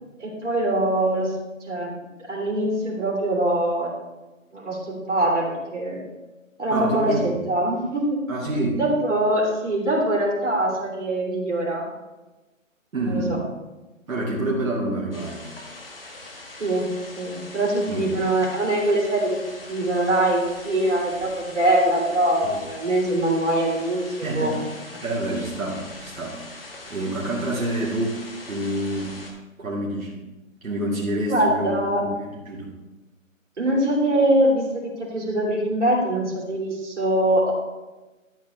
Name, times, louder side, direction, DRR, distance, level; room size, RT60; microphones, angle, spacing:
voice 1, 0.2-1.3 1.7-1.9 2.3-3.9 4.5-6.1 6.6-8.2 8.8-11.9 13.0-13.2 16.6-16.9 17.2-19.4 19.7-24.5 31.3-32.0 33.6-34.6 35.1-37.5, right 1 dB, 60° right, -4 dB, 3.1 m, -23 dB
voice 2, 6.7-7.4 8.3-8.8 12.9-13.4 14.1-15.5 17.9-18.2 22.4-22.5 24.2-24.6 25.0-26.4 26.9-29.2 29.6-30.2 30.6-31.7 32.0-32.7, right 1 dB, 85° right, -5 dB, 2.2 m, -27 dB
sound 1, 15.1-29.3, left 2 dB, 45° left, 1.4 m, -42 dB
12.0 x 6.4 x 3.3 m, 1.1 s
hypercardioid pair, 175°, 41 cm